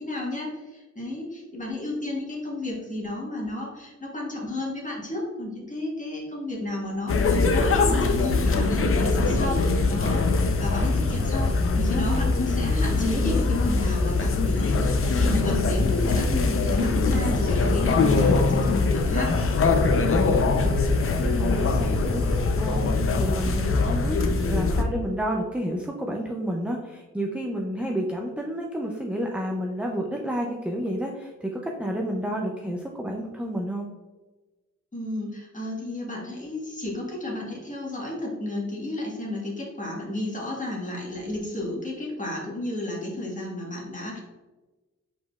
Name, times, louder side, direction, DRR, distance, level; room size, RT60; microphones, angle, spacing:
voice 1, 0.0-10.2 10.6-19.3 32.3-32.4 34.9-44.2, left 1 dB, 25° left, -2 dB, 1.4 m, -32 dB
sound 1, 7.1-24.8, left 3 dB, 45° left, 0.6 m, -22 dB
voice 2, 20.2-33.9, equal, 5° right, 0 dB, 0.4 m, -31 dB
4.9 x 3.8 x 2.3 m, 1.2 s
cardioid pair, 80°, 31 cm